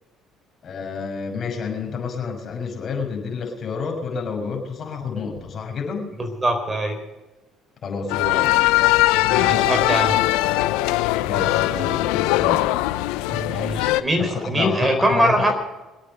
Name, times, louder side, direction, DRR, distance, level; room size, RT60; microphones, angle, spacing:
voice 1, 0.6-6.1 7.8-8.6 11.2-12.6 14.2-15.5, left 5 dB, 50° left, 2 dB, 6.1 m, -29 dB
voice 2, 6.2-7.0 9.3-10.1 13.3-15.5, right 1 dB, 15° right, 5 dB, 4.3 m, -22 dB
sound 1, 8.1-14.0, left 17 dB, 85° left, 0.7 m, -20 dB
24.5 x 8.6 x 6.6 m, 1.1 s
supercardioid pair, 80°, 0 cm